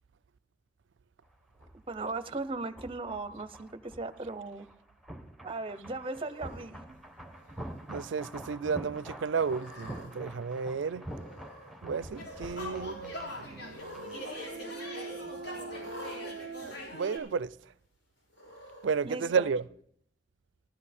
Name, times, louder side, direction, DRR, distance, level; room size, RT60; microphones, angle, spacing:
sound 1, 1.2-15.0 15.3-15.5, right 1 dB, ahead, 1.0 m, -46 dB
voice 1, 1.9-4.7 5.4-7.0 19.0-19.5, right 3 dB, 30° right, 0.7 m, -37 dB
Cat, 6.0-6.6 7.3-7.8 8.2-8.3 9.3-10.1 11.1-11.7 12.0-12.6 13.6-14.3 14.6-14.7 15.8-16.2 17.1-17.2 18.3-18.9, left 1 dB, 85° left, 6.9 m, -48 dB
voice 2, 7.9-11.0 11.8-17.5 18.8-19.6, right 5 dB, 75° right, 0.4 m, -33 dB
sound 2, 12.2-17.2, left 1 dB, 60° left, 3.4 m, -42 dB
15.0 x 11.5 x 4.3 m
head